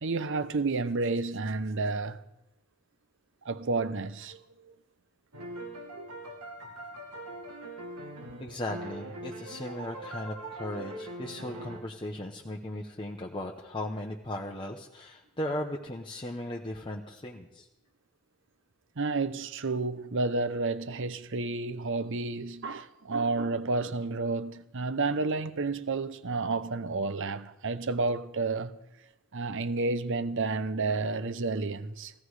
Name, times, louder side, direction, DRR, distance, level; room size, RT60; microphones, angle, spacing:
voice 1, 0.0-2.2 3.4-4.4 8.3-8.4 19.0-28.8 29.3-32.1, right 3 dB, 60° right, 0.8 m, -30 dB
sound 1, 5.3-11.8, right 1 dB, 85° right, 2.5 m, -42 dB
voice 2, 8.4-17.7, left 1 dB, 20° left, 0.9 m, -37 dB
17.0 x 14.5 x 4.9 m
head